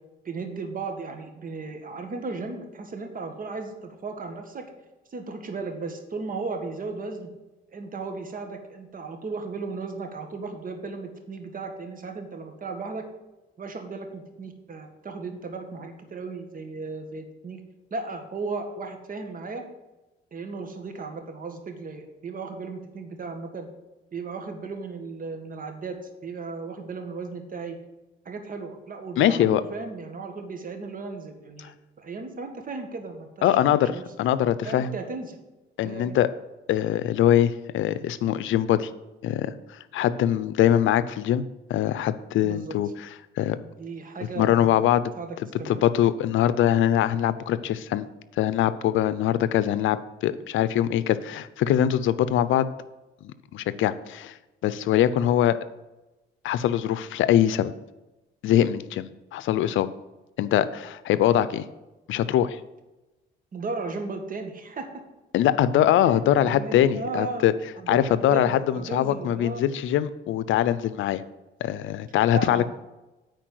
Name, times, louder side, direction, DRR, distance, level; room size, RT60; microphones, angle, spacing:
voice 1, 0.3-4.7 5.1-7.3 7.7-13.1 13.6-17.6 17.9-19.6 20.3-23.7 24.1-27.8 28.3-34.0 34.6-35.4 35.8-36.2 42.4-42.8 43.8-44.8 45.2-45.8 63.5-64.9 66.0-67.5 67.8-69.7 72.3-72.7, right 4 dB, 45° right, 5 dB, 1.8 m, -35 dB
voice 2, 29.2-29.6 33.4-34.9 35.8-36.3 36.7-38.9 39.2-39.5 39.9-41.4 41.7-43.1 43.4-43.6 44.4-45.0 45.7-48.1 48.4-52.7 53.2-54.4 54.6-55.6 56.4-57.7 58.4-59.9 60.4-61.7 62.1-62.6 65.3-67.5 67.9-71.2 71.6-72.7, left 11 dB, 80° left, 15 dB, 0.6 m, -22 dB
9.2 x 4.6 x 7.7 m, 1.0 s
cardioid pair, 90°, 20 cm